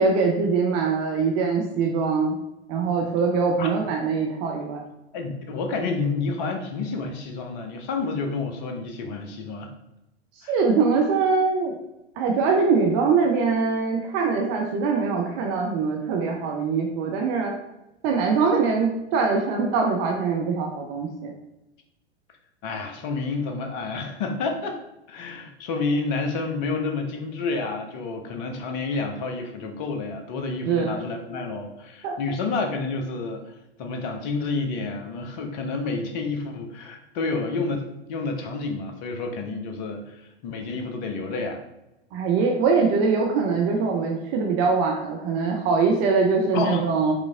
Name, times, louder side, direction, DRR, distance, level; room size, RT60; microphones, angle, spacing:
voice 1, 0.0-2.3 2.7-4.8 10.5-11.7 12.2-17.5 18.0-21.3 30.6-31.0 32.0-32.1 42.1-47.1, right 4 dB, 30° right, 1 dB, 0.6 m, -23 dB
voice 2, 5.1-9.7 10.4-10.6 22.6-24.8 25.1-33.4 33.8-41.6 46.5-46.8, left 3 dB, 40° left, 4 dB, 0.9 m, -29 dB
5.0 x 3.1 x 3.4 m, 0.92 s
figure-of-eight pair, 95°, 33 cm